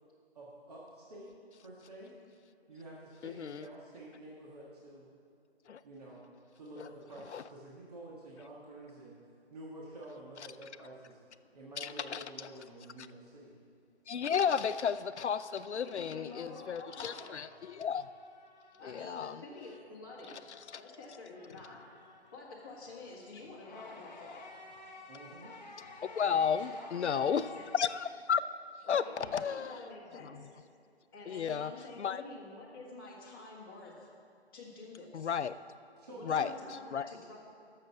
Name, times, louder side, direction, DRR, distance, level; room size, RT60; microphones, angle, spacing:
voice 1, 0.3-1.3 1.6-2.1 2.7-5.1 5.8-6.2 6.5-9.1 9.5-11.2 11.5-13.5 25.1-25.5 36.0-36.7, right 1 dB, 35° right, -5 dB, 1.6 m, -49 dB
voice 2, 3.2-3.7 5.7-5.8 7.3-7.4 11.8-12.2 14.1-18.1 18.8-19.4 26.0-27.4 27.7-28.4 28.9-29.8 30.3-30.5 31.3-31.7 32.0-32.2 35.1-35.6 36.2-37.1, left 7 dB, 90° left, 14 dB, 0.6 m, -33 dB
sound 1, 14.6-19.2 19.5-28.1, left 3 dB, 40° left, 1.0 m, -55 dB
voice 3, 15.9-17.4 18.8-21.8 22.3-24.5 26.6-27.7 28.9-30.5 31.1-34.1 34.5-35.3 36.1-37.4, left 3 dB, 20° left, -6 dB, 1.9 m, -48 dB
13.0 x 6.7 x 5.8 m, 2.3 s
hypercardioid pair, 170°, 33 cm